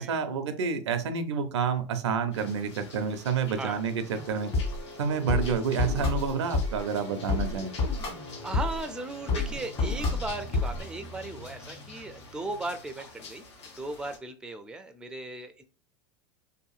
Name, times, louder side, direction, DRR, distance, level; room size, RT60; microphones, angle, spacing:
voice 1, 0.0-4.5 5.0-7.7, right 6 dB, 90° right, 8 dB, 0.5 m, -29 dB
sound 1, 2.3-14.2, left 2 dB, 90° left, 1.0 m, -47 dB
sound 2, 4.1-10.8, left 3 dB, 40° left, 1.3 m, -30 dB
voice 2, 8.4-13.4 13.8-15.6, right 2 dB, 5° right, 8 dB, 0.3 m, -37 dB
2.8 x 2.6 x 2.3 m, 0.38 s
hypercardioid pair, 110°, 14 cm